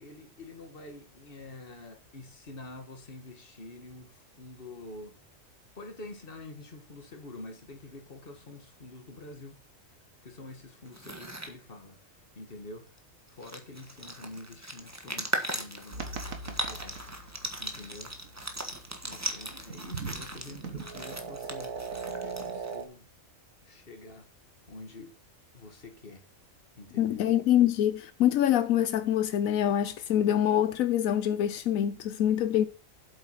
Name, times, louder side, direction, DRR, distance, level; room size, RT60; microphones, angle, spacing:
voice 1, 0.0-5.2 5.8-9.6 10.2-12.9 13.3-16.1 16.4-17.2 17.6-18.2 19.0-21.8 22.2-23.0 23.6-24.3 24.7-25.1 25.5-26.2 26.8-27.4, left 2 dB, 45° left, 2.0 m, -47 dB
sound 1, 10.9-11.5 13.0-13.1 13.3-22.8, right 1 dB, 10° right, 1.4 m, -38 dB
sound 2, 15.9-22.8, right 5 dB, 80° right, 2.1 m, -40 dB
voice 2, 27.0-32.7, left 11 dB, 85° left, 1.1 m, -25 dB
8.1 x 8.1 x 5.7 m
omnidirectional pair, 1.4 m